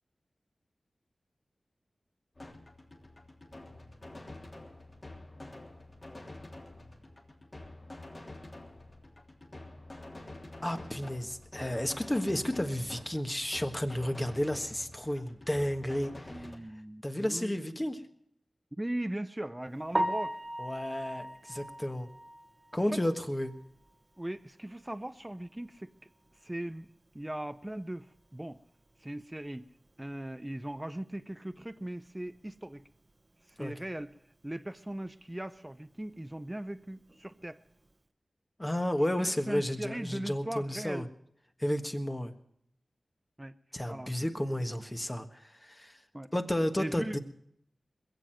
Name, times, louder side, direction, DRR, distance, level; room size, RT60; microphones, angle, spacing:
sound 1, 2.4-16.6, left 2 dB, 40° left, 3.2 m, -48 dB
voice 1, 10.6-16.5 17.0-18.0 20.6-22.1 22.7-23.5 33.6-33.7 38.6-41.1 41.6-42.3 43.7-46.0 46.3-47.2, left 1 dB, 20° left, 6 dB, 1.4 m, -32 dB
voice 2, 16.3-17.7 18.7-20.4 22.9-23.0 24.2-25.9 26.4-26.9 27.1-28.6 29.0-29.6 30.0-32.8 33.5-34.1 34.4-37.6 39.3-41.1 43.4-43.6 43.9-44.1 46.1-46.3 46.8-47.2, right 1 dB, 15° right, 11 dB, 0.6 m, -39 dB
Piano, 19.9-23.9 24.3-24.4 24.9-25.0 25.3-25.4 28.5-28.6 37.1-37.3, right 1 dB, 40° right, 1.1 m, -37 dB
21.5 x 7.6 x 7.6 m, 0.71 s
cardioid pair, 45°, 0 cm